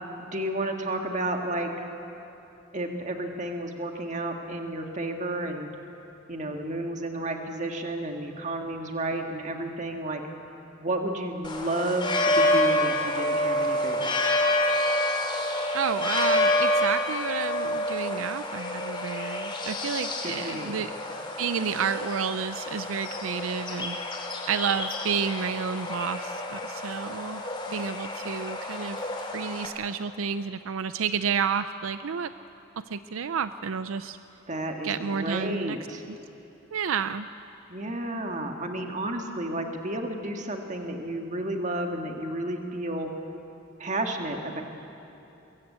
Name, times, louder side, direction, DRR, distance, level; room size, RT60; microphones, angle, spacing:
voice 1, 0.2-1.9 2.7-5.7 6.3-10.2 10.8-14.4 20.2-20.8 34.5-36.1 37.7-43.1 43.8-44.6, right 1 dB, 35° right, 3 dB, 1.7 m, -32 dB
sound 1, 11.4-29.7, left 1 dB, 25° left, 2.5 m, -28 dB
voice 2, 15.7-20.9 21.4-24.0 24.5-27.4 27.7-32.3 32.9-34.2 34.8-35.8 36.1-36.2 36.7-37.3, right 6 dB, 75° right, 12 dB, 0.5 m, -30 dB
23.5 x 22.0 x 8.5 m, 2.9 s
head